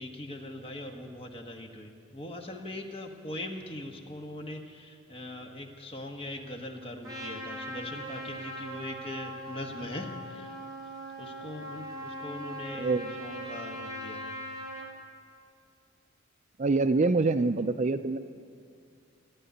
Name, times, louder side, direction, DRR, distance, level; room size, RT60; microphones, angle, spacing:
voice 1, 0.0-10.6 11.2-14.3, left 1 dB, 25° left, 3 dB, 1.3 m, -41 dB
Trumpet, 7.0-14.9, equal, 20° right, 2.9 m, -40 dB
voice 2, 16.6-18.2, right 3 dB, 35° right, 10 dB, 0.4 m, -25 dB
14.0 x 11.0 x 9.3 m, 2.4 s
head